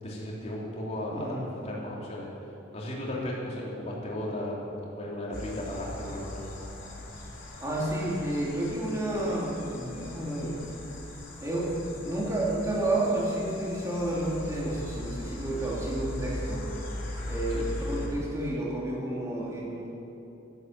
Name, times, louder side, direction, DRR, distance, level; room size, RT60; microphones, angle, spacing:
voice 1, 0.0-2.3 2.7-4.6 4.9-6.7 17.5-17.7, left 1 dB, 35° left, -5 dB, 3.2 m, -35 dB
voice 2, 1.1-1.5 6.7-6.9 7.6-10.6 11.4-16.6 17.2-19.9, right 1 dB, 15° right, -5 dB, 3.1 m, -31 dB
sound 1, 5.3-18.1, left 1 dB, 80° left, 3.9 m, -39 dB
13.0 x 11.5 x 7.6 m, 2.9 s
head